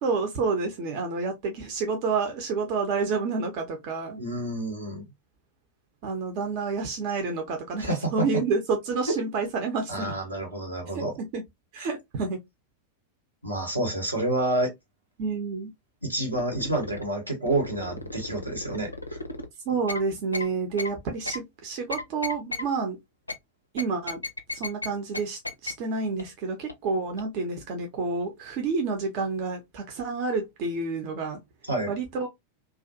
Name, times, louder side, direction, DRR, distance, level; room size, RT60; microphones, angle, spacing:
voice 1, 0.0-4.2 6.0-10.1 10.9-11.4 11.7-12.4 15.2-15.7 19.7-23.0 23.7-24.2 24.5-31.4 31.9-32.3, right 4 dB, 45° right, 0.7 m, -29 dB
voice 2, 4.2-5.1 7.8-8.3 9.9-11.1 11.8-11.9 13.4-14.7 16.0-19.2 31.7-31.9, right 1 dB, 85° right, 1.1 m, -29 dB
sound 1, 16.3-17.0 17.5-19.5 19.9-20.0 20.3-20.5 20.8-20.9 21.3-21.4 21.9-22.6 23.3-23.4 23.8-24.9 25.1-25.2 25.4-25.7 26.2-26.3 26.7-26.8 27.2-27.3, left 2 dB, 85° left, 0.4 m, -33 dB
2.5 x 2.4 x 2.5 m
figure-of-eight pair, 90°, 0 cm